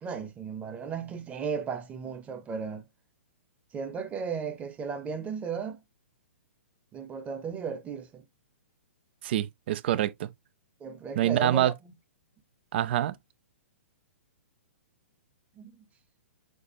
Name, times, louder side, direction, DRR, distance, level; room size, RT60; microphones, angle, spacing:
voice 1, 0.0-2.9 3.7-5.8 6.9-8.2 10.8-11.9 15.6-15.8, right 6 dB, 20° right, 0.9 m, -35 dB
voice 2, 9.2-10.3 11.2-11.7 12.7-13.1, right 12 dB, 50° right, 0.5 m, -26 dB
6.4 x 2.5 x 2.9 m
figure-of-eight pair, 120°, 8 cm